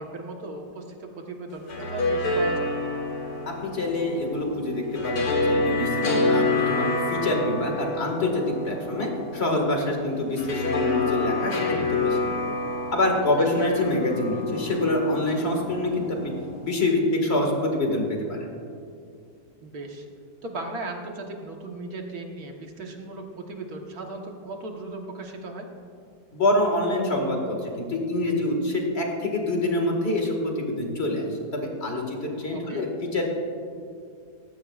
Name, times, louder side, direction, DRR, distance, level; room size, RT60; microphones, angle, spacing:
voice 1, 0.0-2.7 13.4-13.5 19.6-20.1 20.4-25.7 32.5-32.9, right 2 dB, 60° right, 2 dB, 1.8 m, -37 dB
sound 1, 1.5-16.7, left 2 dB, 85° left, 2.3 m, -28 dB
voice 2, 3.5-12.4 12.9-16.3 16.6-18.5 26.3-33.2, left 1 dB, 40° left, 1 dB, 2.1 m, -26 dB
18.0 x 15.5 x 2.5 m, 2.4 s
omnidirectional pair, 1.8 m